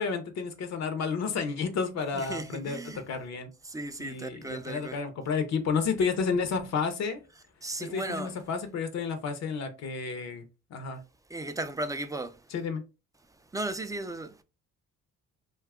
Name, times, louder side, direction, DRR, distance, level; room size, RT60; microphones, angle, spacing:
voice 1, 0.0-2.8 3.1-3.5 4.0-7.2 7.8-10.4 10.7-11.0 12.5-12.8, left 5 dB, 60° left, 0.6 m, -31 dB
voice 2, 2.1-3.0 3.6-5.0 7.6-8.3 11.3-12.4 13.5-14.4, right 2 dB, 10° right, 0.3 m, -35 dB
2.6 x 2.3 x 3.4 m
cardioid pair, 90°, 30 cm